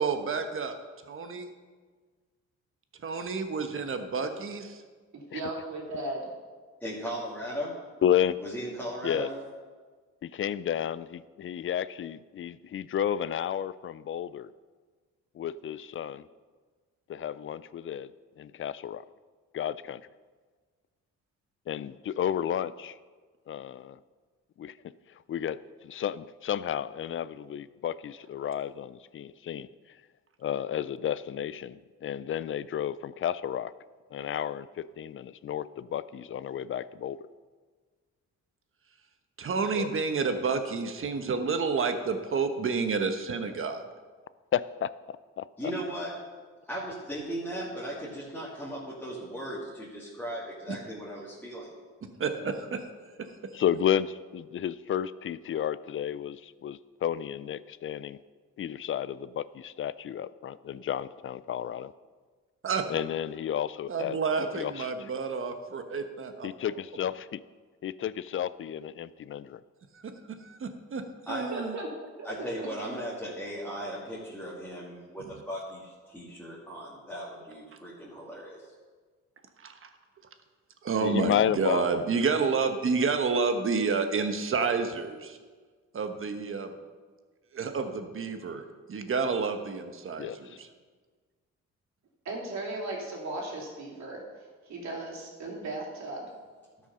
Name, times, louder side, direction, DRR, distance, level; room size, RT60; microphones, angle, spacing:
voice 1, 0.0-0.7 1.1-1.5 3.0-4.8 39.4-43.8 50.7-50.8 52.2-52.8 53.1-53.3 62.6-62.8 63.9-66.7 69.9-70.1 70.4-71.0 71.3-71.8 79.6-79.9 80.8-85.4 85.9-86.7 87.5-90.7, right 5 dB, 45° right, 7 dB, 1.2 m, -30 dB
voice 2, 5.1-6.3 71.5-72.3 92.2-96.3, right 2 dB, 65° right, -2 dB, 3.1 m, -37 dB
voice 3, 6.8-7.8 8.4-9.3 45.6-46.1 46.7-51.7 71.3-71.5 72.2-78.7, equal, 5° left, -8 dB, 2.8 m, -37 dB
voice 4, 8.0-8.4 9.0-9.3 10.2-14.5 15.4-16.3 17.1-18.1 18.4-19.0 19.5-20.0 21.7-23.0 23.5-24.0 24.6-24.7 25.3-29.7 30.4-33.7 34.1-37.2 39.7-39.9 44.5-44.9 45.4-45.7 53.5-58.2 58.6-61.9 62.9-64.2 64.5-64.9 66.4-67.4 67.8-69.6 81.0-82.0 90.2-90.6, left 10 dB, 45° left, 17 dB, 0.4 m, -32 dB
12.5 x 6.2 x 5.6 m, 1.5 s
cardioid pair, 90°, 30 cm